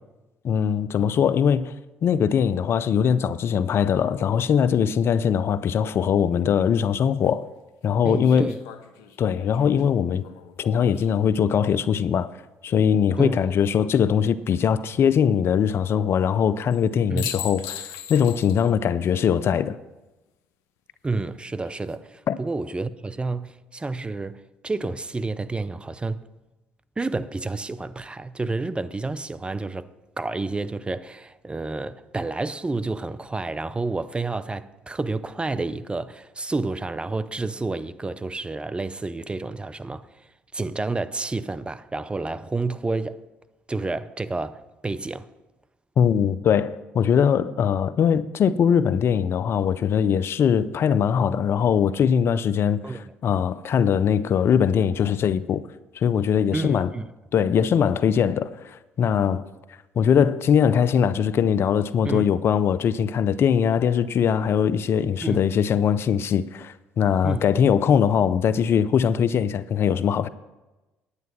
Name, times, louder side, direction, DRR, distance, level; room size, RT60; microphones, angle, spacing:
voice 1, 0.4-1.7 2.0-7.5 7.8-8.5 9.2-10.2 10.6-12.3 12.6-19.8 22.3-22.4 46.0-52.8 53.2-55.6 56.0-56.9 57.3-59.4 60.0-70.3, left 7 dB, 50° left, 0.5 m, -21 dB
sound 1, 6.8-6.9 8.2-11.5 13.3-13.9 16.7-16.8 17.2-18.7 19.0-19.1 21.5-22.0, left 9 dB, 75° left, 0.8 m, -39 dB
voice 2, 8.0-8.6 13.2-13.4 17.1-17.3 21.0-26.2 27.0-29.9 30.2-43.2 43.7-45.3 52.8-53.1 56.5-57.1 62.0-62.3 65.2-65.5 67.2-67.5, right 3 dB, 20° right, 0.6 m, -30 dB
9.7 x 9.2 x 6.1 m
hypercardioid pair, 55°, 5 cm